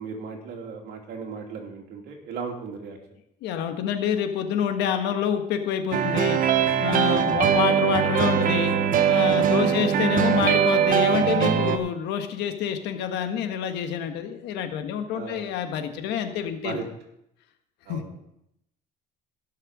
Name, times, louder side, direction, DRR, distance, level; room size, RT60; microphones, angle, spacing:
voice 1, 0.0-3.0 7.0-7.3 9.5-9.7 15.1-15.4 16.6-16.9 17.9-18.1, right 5 dB, 70° right, 1 dB, 2.8 m, -35 dB
voice 2, 3.4-6.4 6.8-8.7 9.1-16.8 17.9-18.0, left 8 dB, 90° left, 7 dB, 1.4 m, -27 dB
sound 1, 5.9-11.8, right 8 dB, 55° right, 1.0 m, -21 dB
16.5 x 6.6 x 4.9 m, 0.79 s
cardioid pair, 110°, 17 cm